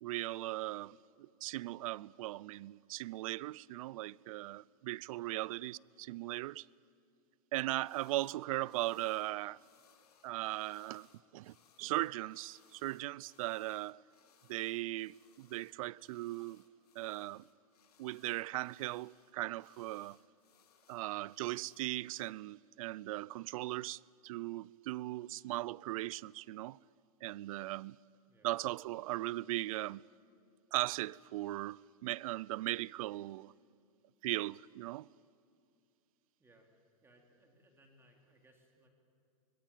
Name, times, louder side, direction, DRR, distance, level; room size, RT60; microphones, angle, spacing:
voice 1, 0.0-6.7 7.5-9.6 10.2-11.1 11.3-14.0 14.5-16.6 17.0-17.4 18.0-20.2 20.9-26.8 27.2-28.0 28.4-30.0 30.7-33.5 34.2-35.1, right 17 dB, 65° right, 0.5 m, -38 dB
sound 1, 7.8-8.4 8.6-22.3, left 8 dB, 85° left, 2.7 m, -68 dB
voice 2, 37.0-38.9, right 1 dB, 10° right, 3.9 m, -66 dB
24.0 x 19.5 x 9.1 m
hypercardioid pair, 130°, 19 cm